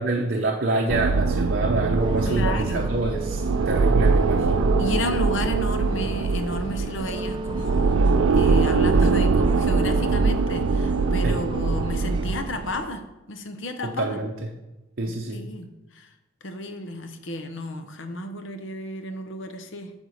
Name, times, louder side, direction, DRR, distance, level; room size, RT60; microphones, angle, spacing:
voice 1, 0.0-4.7 11.2-11.4 14.0-14.3 15.0-15.4, right 2 dB, 50° right, 0 dB, 0.7 m, -26 dB
sound 1, 0.9-12.4, right 4 dB, 85° right, 0.4 m, -22 dB
sound 2, 2.0-12.9, right 2 dB, 25° right, 0.4 m, -35 dB
voice 2, 2.3-2.9 4.8-13.0 13.3-14.2 15.3-15.7 15.9-16.1 16.4-19.9, left 1 dB, 65° left, 7 dB, 0.8 m, -32 dB
9.1 x 3.5 x 6.4 m, 1.0 s
head